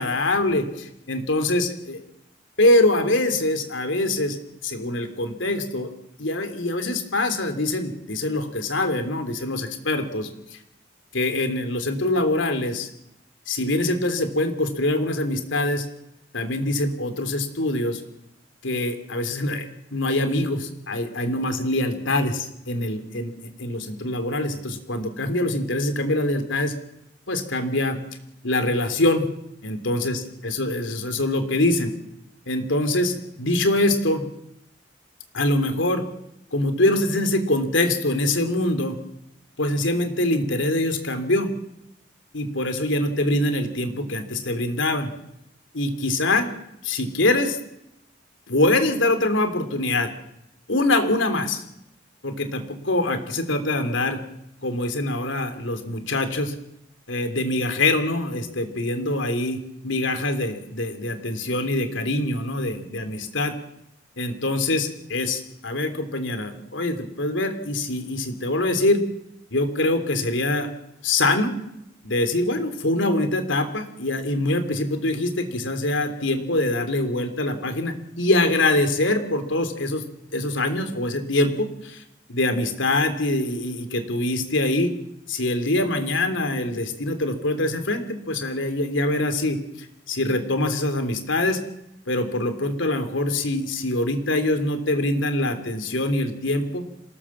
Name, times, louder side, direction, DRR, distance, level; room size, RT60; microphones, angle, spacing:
voice 1, 0.0-2.0 2.6-4.4 4.6-5.9 6.2-10.6 11.1-12.9 13.5-15.9 16.3-18.0 18.6-19.7 19.9-23.3 23.6-26.7 27.3-28.0 28.4-29.3 29.6-31.9 32.5-34.2 35.3-36.0 36.5-38.9 39.6-41.5 42.3-45.1 45.7-46.5 46.8-47.6 48.5-50.1 50.7-51.6 52.2-54.2 54.6-56.5 57.1-59.6 59.8-63.5 64.2-69.0 69.5-70.7 71.0-71.5 72.0-80.0 80.3-82.0 82.3-84.9 85.3-91.6 92.1-96.9, left 2 dB, 85° left, 8 dB, 3.1 m, -24 dB
27.0 x 18.0 x 7.3 m, 0.82 s
head